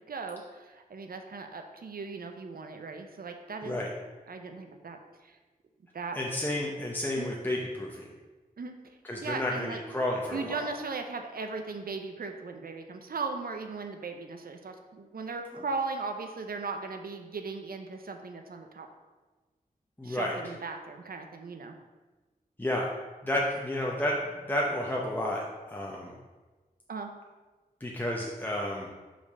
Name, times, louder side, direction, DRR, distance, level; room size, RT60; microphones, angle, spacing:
voice 1, 0.1-3.9 4.3-5.4 5.9-6.2 7.1-7.3 8.6-9.8 10.3-18.9 20.0-21.7 26.9-27.1, right 4 dB, 75° right, 5 dB, 0.7 m, -38 dB
voice 2, 6.1-8.1 9.0-10.6 20.0-20.3 22.6-22.9 23.2-26.1 27.8-28.9, left 1 dB, 10° left, -2 dB, 0.8 m, -31 dB
5.9 x 4.3 x 5.3 m, 1.3 s
wide cardioid pair, 85°, 15 cm